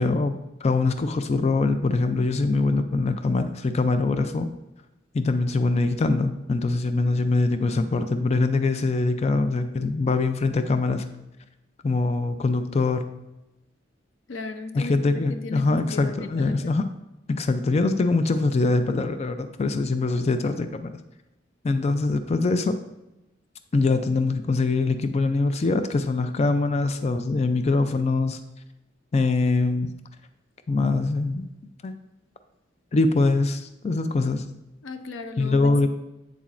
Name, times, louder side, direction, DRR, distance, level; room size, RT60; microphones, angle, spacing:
voice 1, 0.0-4.5 5.1-11.1 11.8-13.0 14.7-16.8 17.3-21.0 21.6-22.8 23.7-28.4 29.1-29.9 30.7-31.5 31.8-31.9 32.9-34.4 35.4-35.9, left 3 dB, 35° left, 9 dB, 0.4 m, -23 dB
voice 2, 14.3-16.7 34.8-35.9, left 4 dB, 85° left, 9 dB, 0.6 m, -36 dB
8.3 x 7.1 x 2.5 m, 0.96 s
head